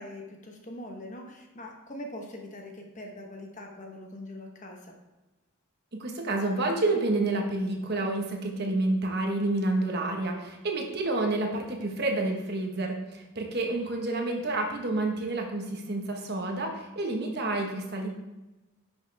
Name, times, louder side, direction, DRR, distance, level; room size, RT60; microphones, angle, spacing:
voice 1, 0.0-5.0, left 1 dB, 35° left, 2 dB, 1.1 m, -42 dB
voice 2, 6.0-18.1, right 2 dB, 45° right, 1 dB, 1.3 m, -29 dB
10.5 x 6.2 x 3.5 m, 1.1 s
head